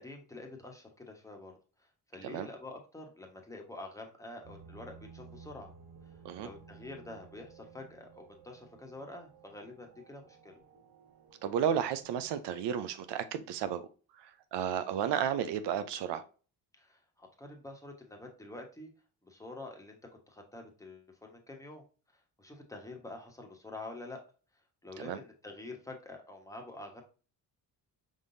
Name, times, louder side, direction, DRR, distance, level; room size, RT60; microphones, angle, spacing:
voice 1, 0.0-1.5 1.8-5.7 6.1-10.6 16.7-18.9 19.2-20.0 20.3-21.8 22.1-24.2 24.8-27.0, left 2 dB, 10° left, 1.2 m, -47 dB
sound 1, 4.4-12.3, right 5 dB, 65° right, 1.2 m, -56 dB
voice 2, 11.4-13.8 14.2-16.2 25.0-25.2, right 9 dB, 85° right, 0.7 m, -33 dB
5.2 x 3.8 x 2.6 m
cardioid pair, 105°, 40 cm